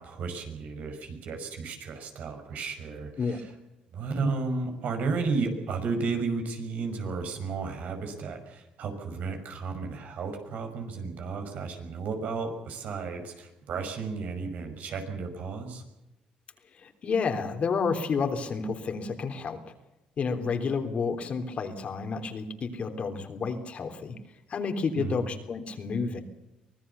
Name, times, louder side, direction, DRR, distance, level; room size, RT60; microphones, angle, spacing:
voice 1, 0.0-3.5 3.9-15.8 25.0-25.2, right 4 dB, 70° right, 5 dB, 5.7 m, -33 dB
voice 2, 16.8-19.6 20.2-24.1 24.5-26.2, left 5 dB, 50° left, 6 dB, 3.4 m, -30 dB
24.5 x 18.5 x 7.0 m, 0.96 s
cardioid pair, 85°, 3 cm